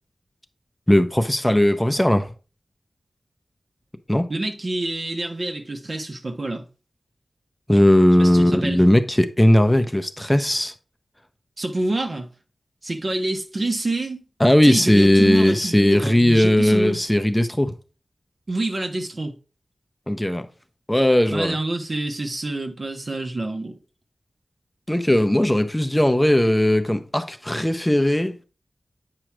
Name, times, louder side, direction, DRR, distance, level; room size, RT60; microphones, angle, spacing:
voice 1, 0.9-2.3 4.1-4.3 7.7-10.7 14.4-17.7 20.1-20.4 20.9-21.6 24.9-28.4, left 1 dB, 10° left, 0.6 m, -18 dB
voice 2, 4.3-6.7 8.2-8.9 11.6-12.3 12.8-14.2 14.6-17.0 18.5-19.3 21.3-23.8, right 2 dB, 55° right, 1.2 m, -27 dB
8.8 x 3.1 x 6.0 m
wide cardioid pair, 75°, 0 cm